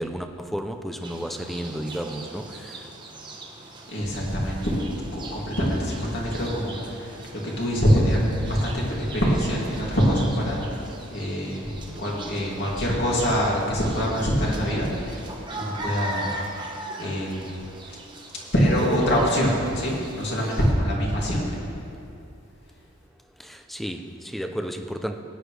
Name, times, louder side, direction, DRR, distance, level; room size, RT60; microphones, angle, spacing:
voice 1, 0.0-2.9 11.9-12.2 23.4-25.2, equal, ahead, 6 dB, 0.5 m, -33 dB
sound 1, 1.0-20.7, right 2 dB, 20° right, 1.1 m, -40 dB
voice 2, 3.9-4.8 5.1-7.2 7.6-11.7 12.0-15.2 15.6-17.5 18.0-18.1 18.5-21.4, equal, 55° left, -4 dB, 2.5 m, -24 dB
17.5 x 9.9 x 3.3 m, 2.7 s
head